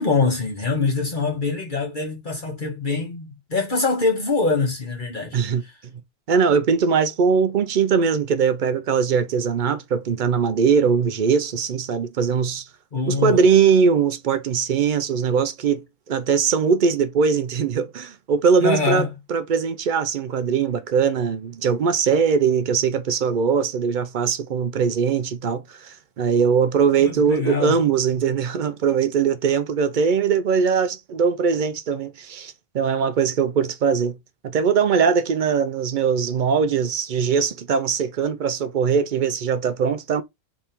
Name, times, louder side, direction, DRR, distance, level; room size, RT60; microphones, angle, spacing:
voice 1, 0.0-5.4 12.9-13.4 18.6-19.1 27.0-27.7, left 4 dB, 45° left, 1.5 m, -24 dB
voice 2, 5.3-5.6 6.3-12.7 13.1-34.2 34.4-40.2, right 6 dB, 60° right, 0.6 m, -21 dB
3.5 x 3.5 x 4.3 m
omnidirectional pair, 1.1 m